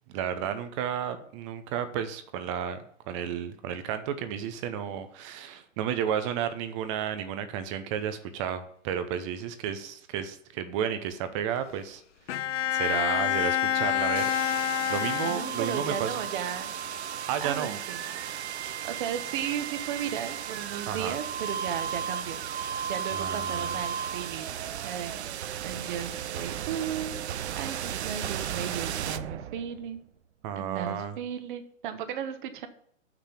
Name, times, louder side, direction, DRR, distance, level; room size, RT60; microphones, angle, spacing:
voice 1, 0.1-2.8 3.1-12.0 12.7-14.2 14.9-16.1 17.3-17.8 20.9-21.1 23.1-23.8 30.4-31.2, right 9 dB, 25° right, 10 dB, 0.7 m, -32 dB
Bowed string instrument, 12.3-16.0, left 11 dB, 70° left, 0.5 m, -28 dB
sound 1, 14.2-30.0, right 8 dB, 55° right, 0.7 m, -34 dB
voice 2, 15.2-16.7 17.4-22.4 22.9-24.4 24.8-25.3 25.6-27.2 27.5-30.0 30.6-32.7, right 9 dB, 40° right, 8 dB, 1.2 m, -35 dB
6.5 x 5.9 x 7.2 m, 0.67 s
hypercardioid pair, 130°, 38 cm